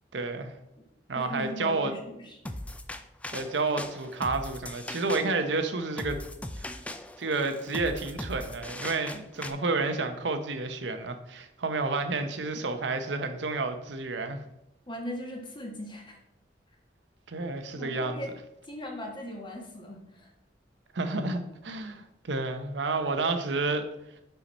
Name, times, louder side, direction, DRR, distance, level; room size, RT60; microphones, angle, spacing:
voice 1, 0.1-0.5 1.1-1.9 3.3-6.2 6.6-6.7 7.2-14.4 17.3-18.2 20.9-23.9, right 3 dB, 90° right, 8 dB, 0.8 m, -30 dB
voice 2, 1.1-2.4 14.9-16.2 17.7-18.3 18.7-20.3, equal, 25° left, 1 dB, 1.3 m, -39 dB
sound 1, 2.5-9.5, left 1 dB, 10° left, 0.3 m, -40 dB
5.7 x 5.7 x 4.2 m, 0.85 s
head